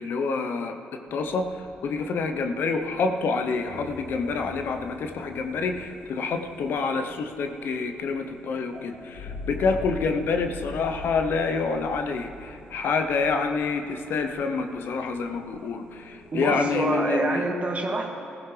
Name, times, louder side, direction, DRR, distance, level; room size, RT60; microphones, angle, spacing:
voice 1, 0.0-17.5, left 4 dB, 65° left, 6 dB, 0.9 m, -27 dB
sound 1, 1.1-16.8, left 3 dB, 85° left, 1.8 m, -44 dB
voice 2, 16.3-18.1, right 3 dB, 35° right, 2 dB, 1.9 m, -26 dB
16.0 x 15.0 x 3.4 m, 2.6 s
hypercardioid pair, 50°, 4 cm